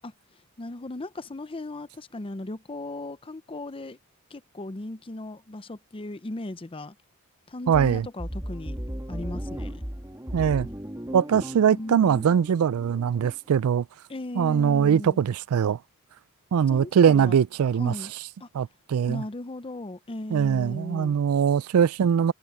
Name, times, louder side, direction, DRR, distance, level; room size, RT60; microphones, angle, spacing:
voice 1, 0.6-4.0 4.3-6.9 7.5-8.8 9.1-9.8 11.7-12.3 14.1-15.2 16.7-17.4 17.8-18.1 18.4-18.5 19.1-21.2, left 2 dB, 25° left, 0.6 m, -37 dB
voice 2, 7.7-8.1 10.3-10.7 11.1-13.9 14.4-15.8 16.5-17.9 18.5-19.2 20.3-22.3, right 8 dB, 80° right, 0.4 m, -22 dB
sound 1, 8.2-13.4, equal, 15° right, 1.5 m, -36 dB
head